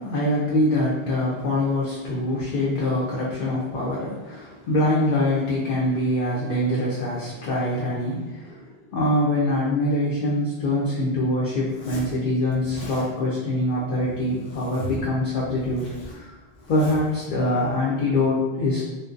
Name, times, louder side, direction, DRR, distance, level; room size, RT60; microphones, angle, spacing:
voice 1, 0.0-16.4 16.7-18.8, left 1 dB, 60° left, -6 dB, 0.6 m, -24 dB
Zipper (clothing), 11.6-12.2 12.5-13.1 13.9-15.1 15.4-17.1, right 1 dB, 85° left, 1.0 m, -39 dB
2.6 x 2.1 x 2.4 m, 1.1 s
omnidirectional pair, 1.0 m